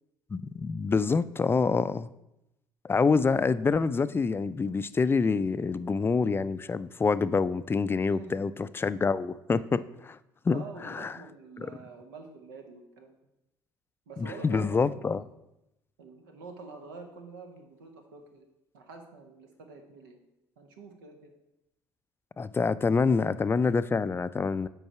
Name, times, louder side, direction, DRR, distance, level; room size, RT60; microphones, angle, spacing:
voice 1, 0.3-2.1 2.8-10.2 10.4-11.2 11.6-11.7 14.2-15.2 22.4-24.7, left 4 dB, 20° left, 15 dB, 0.4 m, -26 dB
voice 2, 8.0-8.3 10.5-13.1 14.1-15.2 16.0-18.5 18.7-20.2 20.6-21.3, right 4 dB, 80° right, 4 dB, 1.0 m, -47 dB
7.8 x 4.7 x 4.6 m, 0.89 s
hypercardioid pair, 55°, 11 cm